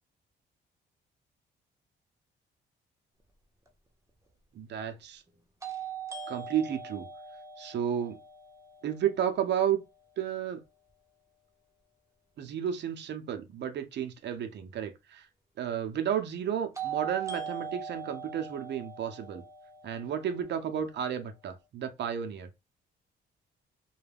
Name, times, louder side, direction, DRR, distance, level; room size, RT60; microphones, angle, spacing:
sound 1, 3.7-3.8 5.6-9.5 16.8-20.8, right 7 dB, 15° right, 0.7 m, -41 dB
voice 1, 4.5-5.2 6.3-7.1 7.6-8.2 8.8-9.8 10.2-10.6 12.4-15.3 15.6-19.4 19.8-22.5, right 9 dB, 60° right, 0.6 m, -32 dB
2.3 x 2.2 x 3.3 m
cardioid pair, 90°, 20 cm